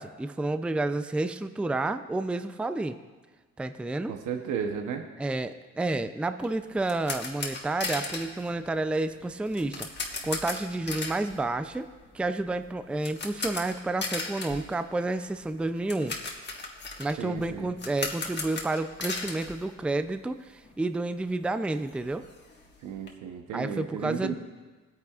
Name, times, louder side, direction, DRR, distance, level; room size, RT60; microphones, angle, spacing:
voice 1, 0.0-3.0 3.6-4.1 5.2-9.9 10.2-11.9 12.1-16.2 17.0-22.3 23.5-24.4, right 2 dB, 5° right, 10 dB, 0.4 m, -30 dB
voice 2, 4.1-5.0 17.2-17.7 22.8-24.4, right 7 dB, 80° right, 5 dB, 0.9 m, -34 dB
sound 1, 6.4-20.4 20.6-20.8 21.2-21.3 21.5-23.1, left 3 dB, 35° left, 1.6 m, -37 dB
18.5 x 9.1 x 2.4 m, 1.3 s
cardioid pair, 90°, 30 cm